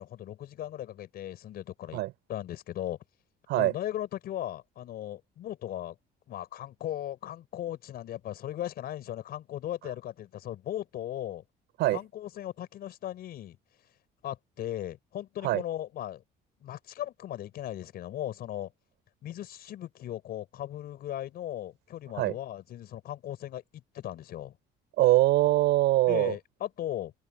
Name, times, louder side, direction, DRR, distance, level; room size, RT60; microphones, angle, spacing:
voice 1, 0.0-2.0 2.3-3.0 3.6-6.0 6.3-11.4 11.9-13.6 14.2-16.2 16.6-18.7 19.2-24.6 26.1-27.1, left 12 dB, 65° left, 5.1 m, -37 dB
voice 2, 25.0-26.3, right 17 dB, 85° right, 5.1 m, -23 dB
cardioid pair, 110°, 17 cm